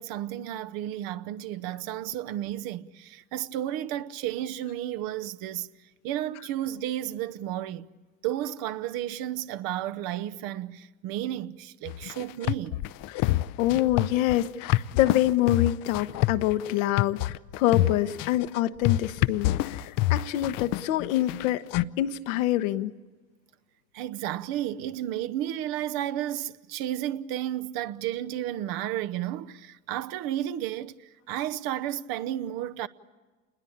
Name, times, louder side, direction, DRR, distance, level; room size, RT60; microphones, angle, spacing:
voice 1, 0.0-5.7 6.0-7.9 8.2-12.8 23.9-31.0 31.3-32.9, right 12 dB, 55° right, 1.0 m, -32 dB
sound 1, 11.9-21.8, left 16 dB, 50° left, 0.7 m, -27 dB
voice 2, 13.6-21.6 22.0-22.9, left 13 dB, 70° left, 1.1 m, -26 dB
28.5 x 20.5 x 8.6 m
hypercardioid pair, 70°, 43 cm